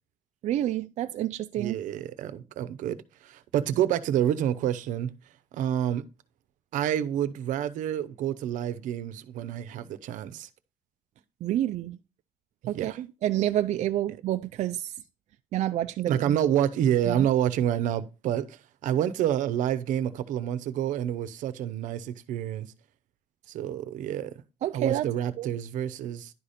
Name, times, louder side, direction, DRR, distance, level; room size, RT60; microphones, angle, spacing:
voice 1, 0.4-1.8 11.4-12.0 12.7-14.9 15.5-16.4 17.1-17.3 24.6-25.1 25.4-25.5, right 12 dB, 65° right, 0.4 m, -28 dB
voice 2, 1.6-3.0 3.2-5.1 5.5-6.0 6.7-10.5 12.7-13.0 16.1-22.7 23.5-24.3 24.7-26.3, right 10 dB, 90° right, 0.8 m, -28 dB
11.0 x 4.2 x 5.0 m
cardioid pair, 135°, 13 cm